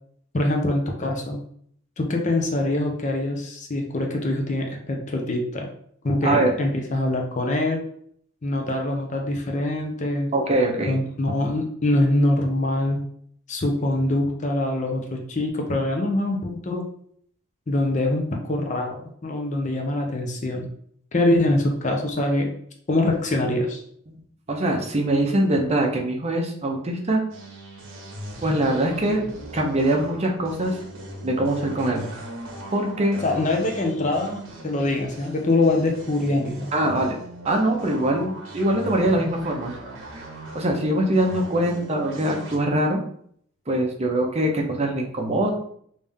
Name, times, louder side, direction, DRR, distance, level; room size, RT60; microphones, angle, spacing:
voice 1, 0.3-1.4 2.0-5.7 6.0-7.8 8.4-10.3 10.8-13.1 13.5-16.8 17.7-20.7 21.1-22.5 22.9-23.8 33.2-36.7, left 1 dB, 35° left, 2 dB, 0.6 m, -24 dB
voice 2, 10.3-11.0 24.5-27.2 28.4-29.2 29.5-30.8 31.2-32.1 32.7-33.2 36.7-37.2 37.4-39.8 40.5-43.0 43.7-45.5, right 1 dB, 30° right, 1 dB, 0.6 m, -23 dB
sound 1, 27.3-42.6, right 1 dB, 60° right, 0.9 m, -39 dB
3.3 x 2.7 x 3.5 m, 0.64 s
head